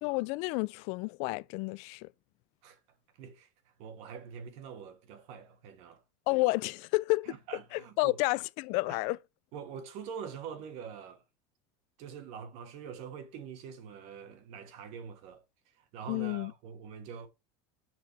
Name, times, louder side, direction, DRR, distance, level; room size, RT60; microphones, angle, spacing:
voice 1, 0.0-2.1 6.3-7.3 7.7-9.2 16.1-16.5, left 23 dB, 50° left, 0.4 m, -30 dB
voice 2, 3.2-3.5 3.8-6.0 7.3-8.2 8.9-9.0 9.5-11.2 12.0-17.3, right 7 dB, 50° right, 1.4 m, -44 dB
7.4 x 6.0 x 4.2 m
cardioid pair, 165°, 14 cm